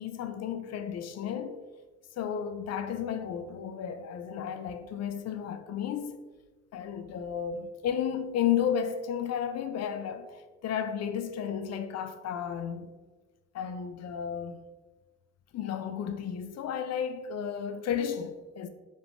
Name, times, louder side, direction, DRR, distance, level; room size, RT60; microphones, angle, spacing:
voice 1, 0.0-1.6 2.2-6.2 6.7-10.3 10.6-12.9 13.5-14.6 15.5-18.7, left 8 dB, 60° left, 0.4 m, -33 dB
4.9 x 3.4 x 2.6 m
cardioid pair, 90°, 30 cm